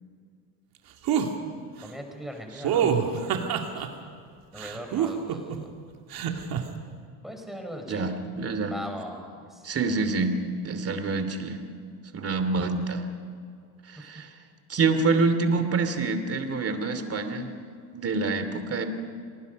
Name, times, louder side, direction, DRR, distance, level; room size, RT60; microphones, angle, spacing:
sound 1, 1.1-1.3 2.6-3.9 4.6-5.6 6.1-6.6, right 8 dB, 55° right, 2.5 m, -26 dB
voice 1, 1.8-3.2 4.5-5.7 7.2-8.1 8.6-9.6, equal, ahead, 3 dB, 4.9 m, -39 dB
voice 2, 2.6-3.2 7.9-8.7 9.6-11.6 12.1-13.0 13.9-14.3 14.7-17.5 17.9-18.9, right 3 dB, 35° right, 8 dB, 2.8 m, -27 dB
27.5 x 19.5 x 5.4 m, 2.2 s
supercardioid pair, 105°, 42 cm